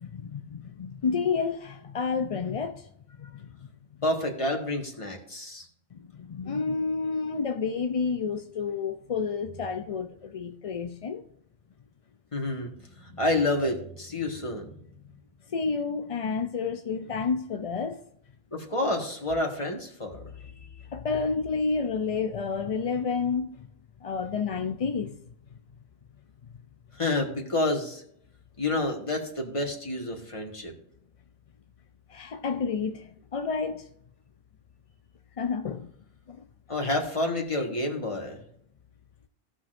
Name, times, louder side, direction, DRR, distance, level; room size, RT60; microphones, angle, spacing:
voice 1, 0.0-3.5 5.9-11.2 15.5-18.0 20.9-23.7 24.0-25.2 32.1-33.9 35.4-35.9 36.3-36.4, left 5 dB, 45° left, 0.5 m, -30 dB
voice 2, 4.0-5.6 12.3-12.7 13.0-14.7 18.5-20.2 27.0-28.0 28.6-30.7 36.7-38.4, left 2 dB, 30° left, 1.5 m, -29 dB
17.0 x 6.1 x 2.5 m
omnidirectional pair, 1.1 m